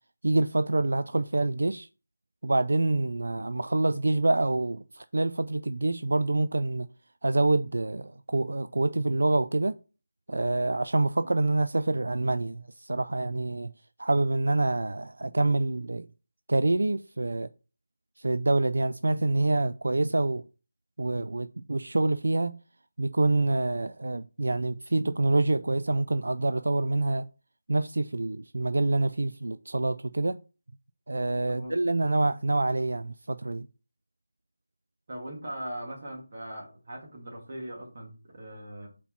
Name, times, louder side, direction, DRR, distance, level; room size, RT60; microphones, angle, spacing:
voice 1, 0.2-1.9 2.4-6.9 7.2-9.7 10.3-13.7 14.0-16.1 16.5-17.5 18.2-20.4 21.0-22.6 23.0-27.3 27.7-30.4 31.1-33.7, right 2 dB, 75° right, 0.3 m, -26 dB
voice 2, 35.1-38.9, right 1 dB, 35° right, 2.2 m, -40 dB
4.3 x 4.2 x 5.7 m
figure-of-eight pair, 175°, 0 cm